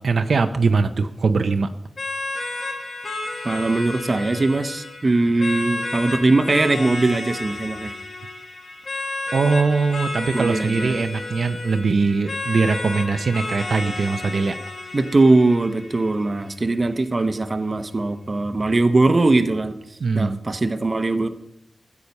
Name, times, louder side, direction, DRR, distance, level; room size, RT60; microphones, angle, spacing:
voice 1, 0.0-1.7 9.3-14.6 20.0-20.4, right 4 dB, 75° right, 8 dB, 0.6 m, -21 dB
sound 1, 2.0-16.9, left 2 dB, 50° left, 1.6 m, -32 dB
voice 2, 3.4-7.9 10.3-10.9 14.9-19.8 20.1-21.3, right 2 dB, 35° right, 9 dB, 0.8 m, -20 dB
13.5 x 8.3 x 5.4 m, 0.79 s
wide cardioid pair, 115°, 0 cm